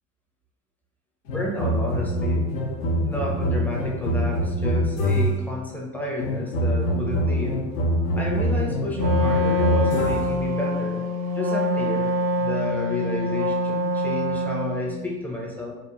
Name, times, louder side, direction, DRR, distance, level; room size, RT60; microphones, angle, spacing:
sound 1, 1.3-5.5 6.2-10.5, equal, 70° left, 0.6 m, -24 dB
voice 1, 1.3-2.5 3.0-7.7 8.1-11.0 11.3-15.7, left 1 dB, 5° left, -3 dB, 0.4 m, -31 dB
Wind instrument woodwind instrument, 8.9-14.9, left 1 dB, 65° right, 0.6 m, -25 dB
2.9 x 2.0 x 2.4 m, 1.1 s
figure-of-eight pair, 70°, 41 cm